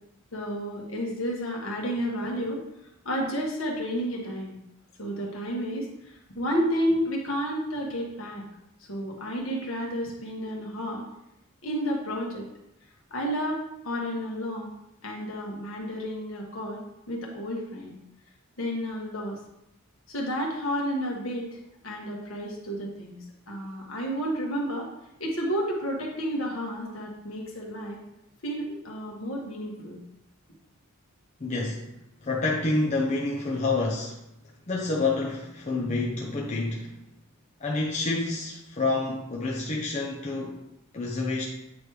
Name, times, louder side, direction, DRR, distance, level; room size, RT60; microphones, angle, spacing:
voice 1, 0.3-2.6 3.0-4.5 5.0-8.4 8.9-11.0 11.6-12.5 13.1-14.7 15.0-16.8 17.1-17.9 18.6-19.4 20.1-21.6 21.8-24.9 25.2-28.0 28.4-30.0, equal, 65° left, -2 dB, 1.5 m, -31 dB
voice 2, 31.4-31.9 32.2-34.2 34.7-36.9 37.6-40.6 40.9-41.4, left 3 dB, 30° left, -3 dB, 0.7 m, -28 dB
8.5 x 3.2 x 4.8 m, 0.84 s
head